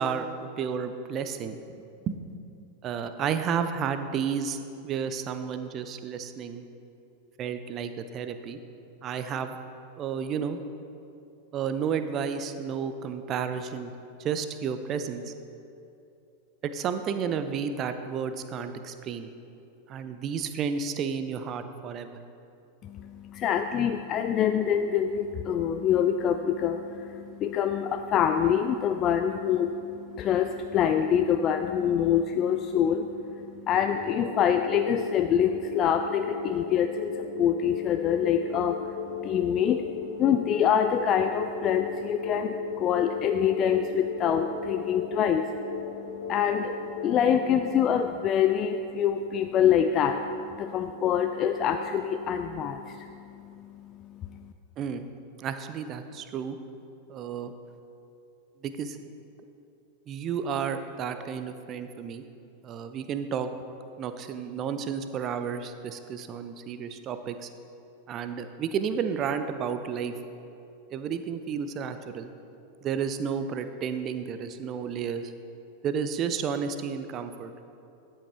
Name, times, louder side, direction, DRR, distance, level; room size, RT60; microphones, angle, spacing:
voice 1, 0.0-1.6 2.1-2.2 2.8-4.6 4.8-6.6 7.4-8.6 9.0-9.6 10.0-10.6 11.5-13.9 14.2-15.3 16.6-19.3 19.9-22.2 54.8-55.1 55.4-56.6 57.1-57.5 58.6-59.0 60.1-62.2 62.6-63.5 64.0-67.5 68.1-70.1 70.9-72.3 72.8-75.3 75.8-77.6, right 7 dB, 30° right, 9 dB, 0.6 m, -32 dB
voice 2, 22.8-54.5, left 8 dB, 30° left, 7 dB, 0.3 m, -26 dB
sound 1, 33.7-47.4, left 4 dB, 65° left, 1.1 m, -37 dB
12.5 x 7.5 x 3.4 m, 2.7 s
figure-of-eight pair, 90°, 0 cm